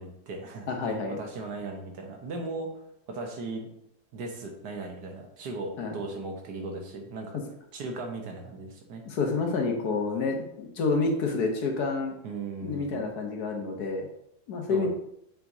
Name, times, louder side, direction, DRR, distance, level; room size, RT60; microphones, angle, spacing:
voice 1, 0.0-0.7 1.1-2.7 3.1-3.7 4.1-7.4 7.7-9.0 12.2-13.1 14.7-14.9, right 3 dB, 85° right, 2 dB, 1.7 m, -37 dB
voice 2, 0.7-1.2 5.8-6.0 9.0-12.1 12.6-14.1 14.5-14.9, left 4 dB, 75° left, 3 dB, 1.5 m, -28 dB
7.4 x 4.7 x 2.7 m, 0.75 s
omnidirectional pair, 1.7 m